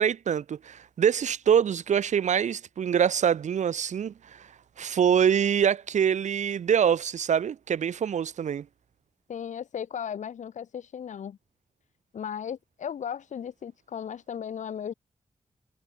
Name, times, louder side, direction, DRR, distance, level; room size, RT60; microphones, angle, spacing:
voice 1, 0.0-4.5 4.8-8.6, right 8 dB, 80° right, 1.1 m, -25 dB
voice 2, 9.3-11.4 12.1-14.9, left 8 dB, 90° left, 4.2 m, -36 dB
cardioid pair, 70°, 12 cm